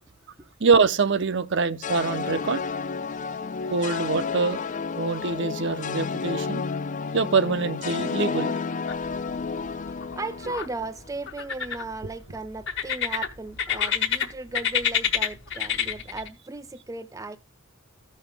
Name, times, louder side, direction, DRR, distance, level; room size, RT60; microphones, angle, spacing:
voice 1, 0.6-2.6 3.7-4.6 5.0-6.6 7.1-8.6, right 4 dB, 60° right, 0.7 m, -24 dB
sound 1, 1.8-11.1, left 5 dB, 35° left, 0.4 m, -31 dB
sound 2, 8.9-9.4 9.7-10.7 11.3-12.1 12.7-14.3 14.5-16.3, left 9 dB, 60° left, 1.3 m, -27 dB
voice 2, 9.0-17.4, right 3 dB, 15° right, 0.5 m, -37 dB
14.5 x 5.6 x 3.4 m
head